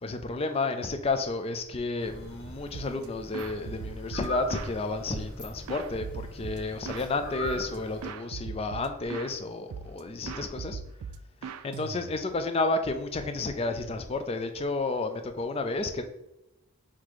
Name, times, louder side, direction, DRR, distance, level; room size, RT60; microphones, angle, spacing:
voice 1, 0.0-10.8 11.4-16.0, left 3 dB, 25° left, 0.4 m, -31 dB
sound 1, 2.0-8.1, left 1 dB, 55° left, 1.6 m, -41 dB
sound 2, 2.7-3.1 3.3-4.8 5.1-7.1 7.4-7.8 8.0-9.3 9.7-10.0 10.3-12.3, right 6 dB, 85° right, 0.3 m, -40 dB
4.0 x 2.8 x 4.6 m
head